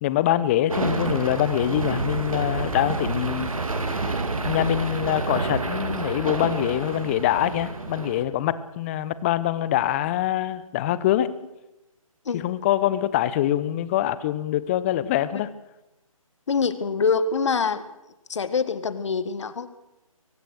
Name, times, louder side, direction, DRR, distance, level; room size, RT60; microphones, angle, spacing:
voice 1, 0.0-3.5 4.4-11.3 12.3-15.5, left 12 dB, 20° left, 16 dB, 1.0 m, -24 dB
sound 1, 0.7-8.2, right 3 dB, 75° right, 3.8 m, -28 dB
voice 2, 16.5-17.8 18.3-19.7, left 5 dB, 55° left, 14 dB, 1.9 m, -25 dB
23.5 x 19.5 x 6.6 m, 0.96 s
figure-of-eight pair, 150°, 18 cm